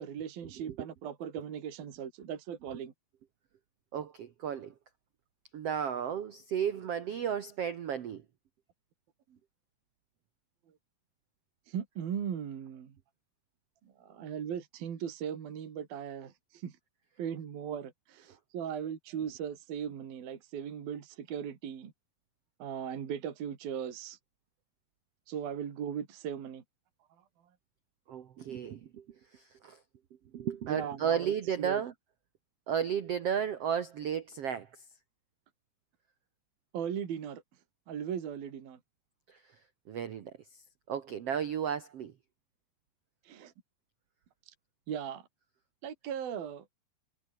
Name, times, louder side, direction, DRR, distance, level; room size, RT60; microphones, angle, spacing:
voice 1, 0.0-2.9 11.7-13.0 14.0-16.8 17.2-21.9 22.6-24.2 25.3-26.6 30.7-31.8 36.7-37.4 37.9-38.8 43.3-43.5 44.5-44.6 44.9-45.3 45.8-46.6, right 8 dB, 60° right, 4.4 m, -38 dB
voice 2, 3.9-4.7 5.5-8.2 28.1-29.0 29.3-29.8 30.3-31.9 32.7-34.8 39.3-39.4 39.9-40.3 40.9-42.1, right 8 dB, 85° right, 1.3 m, -33 dB
omnidirectional pair, 4.8 m